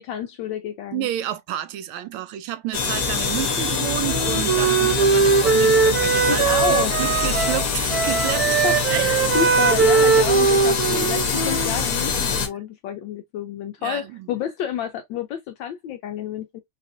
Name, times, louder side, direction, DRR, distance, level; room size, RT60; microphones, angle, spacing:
voice 1, 0.0-1.1 6.3-7.0 8.4-8.7 9.0-16.6, left 10 dB, 75° left, 1.1 m, -29 dB
voice 2, 0.9-8.6 8.9-9.1 13.8-14.3, right 13 dB, 75° right, 1.4 m, -30 dB
sound 1, 2.7-12.5, left 5 dB, 55° left, 1.2 m, -24 dB
sound 2, 2.9-10.5, left 6 dB, 5° left, 1.1 m, -37 dB
Wind instrument woodwind instrument, 4.0-7.7 7.9-11.8, right 5 dB, 55° right, 1.1 m, -20 dB
4.7 x 2.5 x 2.5 m
omnidirectional pair, 2.4 m